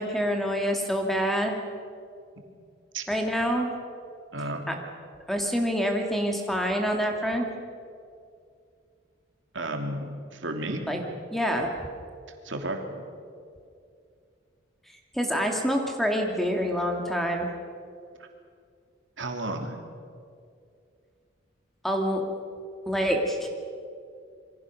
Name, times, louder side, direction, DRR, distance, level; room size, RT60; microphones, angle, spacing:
voice 1, 0.0-1.6 3.1-3.7 4.7-4.8 5.3-7.5 10.9-11.0 11.3-11.9 15.1-17.5 21.8-22.2 22.9-23.5, equal, ahead, 2 dB, 2.3 m, -26 dB
voice 2, 4.3-4.7 9.5-11.0 12.4-13.0 19.2-19.8, right 1 dB, 70° right, 4 dB, 2.9 m, -32 dB
27.5 x 23.5 x 6.5 m, 2.3 s
head